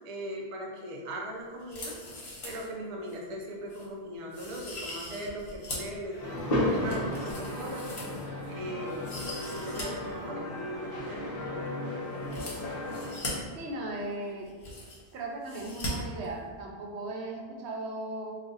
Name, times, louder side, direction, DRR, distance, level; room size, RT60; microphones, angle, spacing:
voice 1, 0.0-2.0 2.4-7.9 8.5-12.6, right 1 dB, 45° right, -1 dB, 0.4 m, -39 dB
sound 1, 1.6-2.7 3.1-3.2 3.7-3.9 4.3-6.0 6.4-8.5 8.9-9.8 10.1-10.2 12.2-13.3 14.1-14.2 14.4-15.1 15.4-15.9 16.2-16.3, left 1 dB, 60° left, 1.0 m, -40 dB
Crowd, 6.0-12.2, equal, 25° left, 1.0 m, -49 dB
sound 2, 6.2-13.1, left 1 dB, 45° left, 0.7 m, -34 dB
voice 2, 13.5-14.5 15.1-18.3, right 2 dB, 80° right, 0 dB, 0.9 m, -37 dB
2.5 x 2.4 x 3.8 m, 1.5 s
omnidirectional pair, 1.1 m